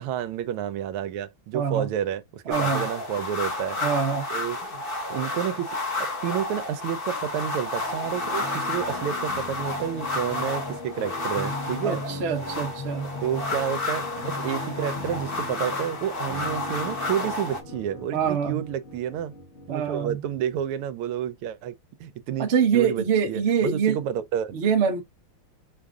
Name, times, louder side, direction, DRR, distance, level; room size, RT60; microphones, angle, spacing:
voice 1, 0.0-3.8 4.3-4.8 5.1-5.8 6.2-12.0 13.2-19.3 19.7-21.7 22.0-24.6, right 10 dB, 80° right, 1.5 m, -30 dB
voice 2, 1.5-1.9 2.5-2.9 3.8-4.3 11.8-13.1 18.1-18.6 19.7-20.2 22.4-24.0 24.5-25.0, right 7 dB, 65° right, 0.6 m, -24 dB
sound 1, 2.5-17.6, left 2 dB, 35° left, 0.9 m, -31 dB
sound 2, 7.2-20.6, left 3 dB, 70° left, 0.6 m, -39 dB
5.3 x 2.5 x 3.5 m
omnidirectional pair, 2.4 m